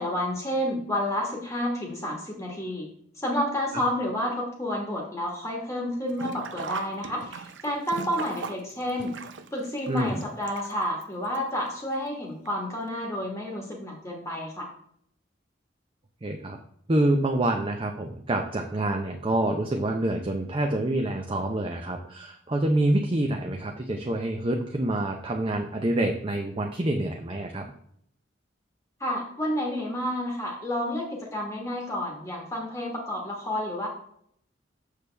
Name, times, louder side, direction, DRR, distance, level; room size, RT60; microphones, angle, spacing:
voice 1, 0.0-2.9 3.1-9.2 9.5-14.7 29.0-33.9, left 1 dB, 15° left, -1 dB, 1.3 m, -30 dB
Sink (filling or washing), 6.1-11.0 11.3-11.4 12.5-12.6 12.9-13.0, right 5 dB, 75° right, 0.6 m, -39 dB
voice 2, 9.9-10.2 16.2-16.6 16.9-27.7, right 1 dB, 30° right, 3 dB, 0.6 m, -27 dB
6.8 x 6.5 x 3.3 m, 0.68 s
head